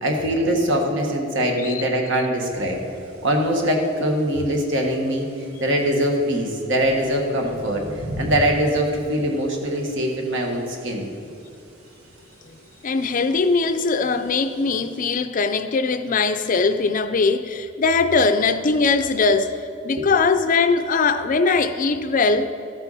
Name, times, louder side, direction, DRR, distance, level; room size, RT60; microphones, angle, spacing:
voice 1, 0.0-2.8 3.2-5.3 5.6-7.8 8.2-11.1 20.0-20.1, equal, 65° right, 1 dB, 1.5 m, -22 dB
sound 1, 2.4-15.1, equal, 80° right, 1.9 m, -39 dB
voice 2, 12.8-19.5 19.8-22.5, left 4 dB, 40° left, 10 dB, 0.4 m, -20 dB
13.5 x 8.0 x 4.1 m, 2.7 s
head